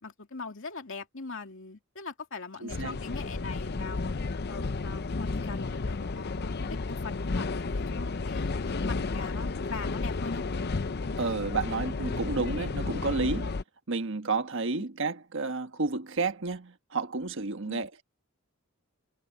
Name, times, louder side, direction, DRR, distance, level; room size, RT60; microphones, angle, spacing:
voice 1, 0.0-4.1 4.5-10.5 17.7-17.9, left 4 dB, 65° left, 2.7 m, -41 dB
voice 2, 2.6-3.0 11.2-13.5 13.9-18.0, right 3 dB, 65° right, 1.4 m, -31 dB
sound 1, 2.7-13.6, left 3 dB, 50° left, 0.6 m, -32 dB
head